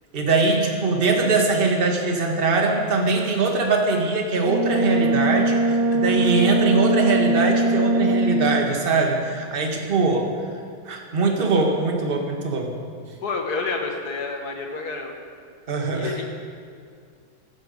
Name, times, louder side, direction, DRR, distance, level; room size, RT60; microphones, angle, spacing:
voice 1, 0.1-5.6 5.9-10.3 10.8-12.7 15.7-16.1, right 3 dB, 30° right, 2 dB, 1.6 m, -22 dB
Brass instrument, 4.4-8.8, right 2 dB, 80° right, 1.7 m, -21 dB
voice 2, 5.4-6.3 10.1-10.2 13.2-15.2 15.9-16.2, left 4 dB, 55° left, 3 dB, 2.0 m, -30 dB
16.0 x 12.0 x 5.3 m, 2.3 s
omnidirectional pair, 2.1 m